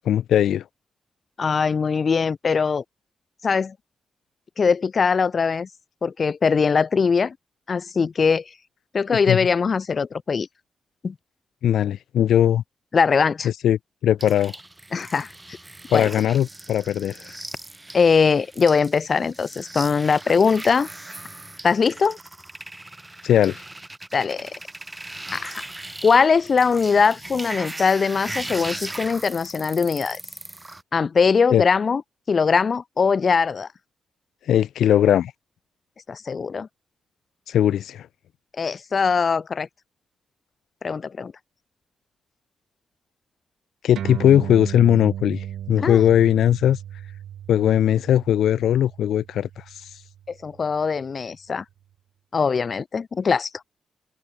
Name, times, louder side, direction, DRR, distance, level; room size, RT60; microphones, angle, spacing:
voice 1, 0.0-0.6 9.3-9.4 11.6-12.6 13.4-14.5 15.9-17.4 23.2-23.6 31.5-31.6 34.4-35.3 37.5-38.1 43.8-46.8 47.5-50.0, left 10 dB, 85° left, 1.0 m, -19 dB
voice 2, 1.4-2.8 3.4-3.7 4.6-5.7 6.0-7.4 7.7-8.4 8.9-10.5 11.0-11.1 12.9-13.5 14.9-15.3 15.9-16.0 17.9-20.9 21.6-22.2 24.1-24.5 25.3-25.6 26.0-30.2 30.9-32.0 32.3-33.7 36.1-36.7 38.6-39.7 40.8-41.3 45.8-46.0 50.3-51.6 52.3-53.5, left 5 dB, 50° left, 2.2 m, -21 dB
sound 1, 14.2-30.8, right 2 dB, 15° right, 4.8 m, -38 dB
sound 2, 44.0-50.8, right 10 dB, 85° right, 5.8 m, -36 dB
cardioid pair, 80°, 0 cm